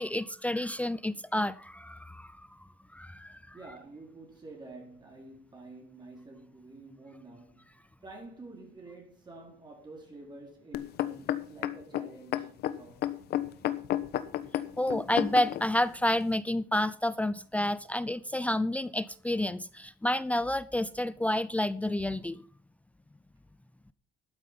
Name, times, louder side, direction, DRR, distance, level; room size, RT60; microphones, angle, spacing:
voice 1, 0.0-2.5 2.9-3.5 14.8-22.4, left 1 dB, 10° left, 0.6 m, -30 dB
voice 2, 3.5-13.1, right 2 dB, 25° right, 4.2 m, -49 dB
sound 1, 10.7-15.6 16.3-16.4, left 12 dB, 70° left, 1.2 m, -31 dB
13.0 x 9.1 x 5.8 m
cardioid pair, 110°, 17 cm